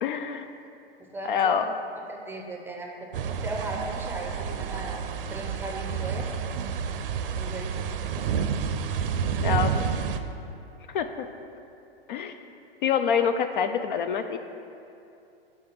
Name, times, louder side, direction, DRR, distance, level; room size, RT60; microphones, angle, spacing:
voice 1, 0.0-0.5 1.2-1.7 9.4-9.7 10.9-11.1 12.1-12.3 12.8-14.4, left 7 dB, 55° left, 8 dB, 0.4 m, -25 dB
voice 2, 1.0-1.5 2.1-5.0 5.3-6.3 7.3-7.8, right 2 dB, 5° right, 0 dB, 0.6 m, -37 dB
sound 1, 3.1-10.2, right 7 dB, 60° right, 0.5 m, -29 dB
6.3 x 4.3 x 5.8 m, 2.6 s
hypercardioid pair, 110°, 31 cm